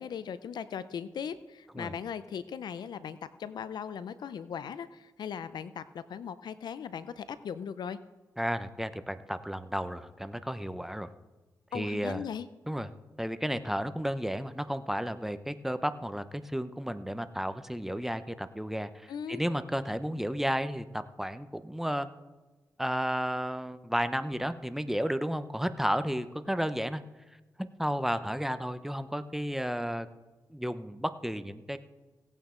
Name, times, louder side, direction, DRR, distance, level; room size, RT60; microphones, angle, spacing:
voice 1, 0.0-8.0 11.7-12.5 19.1-19.4, left 7 dB, 80° left, 14 dB, 0.5 m, -38 dB
voice 2, 8.4-11.1 11.7-12.2 12.7-12.9 13.2-22.1 22.8-27.0 27.8-30.1 30.5-31.8, equal, 5° right, 11 dB, 0.7 m, -32 dB
17.5 x 8.9 x 3.8 m, 1.2 s
cardioid pair, 70°, 7 cm